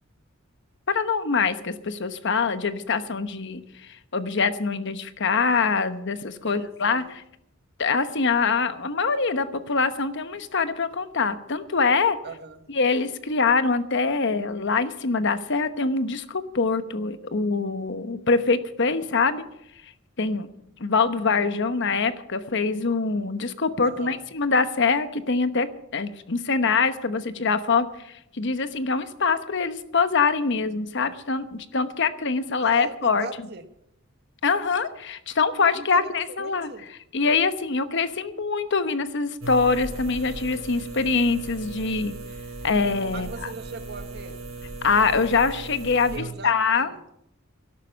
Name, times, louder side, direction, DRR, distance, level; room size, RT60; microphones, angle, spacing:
voice 1, 0.9-7.2 7.8-12.2 12.7-19.4 20.2-20.5 20.8-33.3 34.4-36.7 37.1-42.1 42.6-43.5 44.8-46.9, left 4 dB, 60° left, 11 dB, 1.1 m, -24 dB
voice 2, 6.4-7.1 12.2-12.7 23.8-24.2 32.6-33.6 35.7-36.1 36.4-36.9 43.1-44.4 46.1-47.0, right 4 dB, 55° right, 8 dB, 1.4 m, -39 dB
sound 1, 39.4-46.2, right 3 dB, 80° right, 3.3 m, -37 dB
12.5 x 11.5 x 7.1 m, 0.78 s
head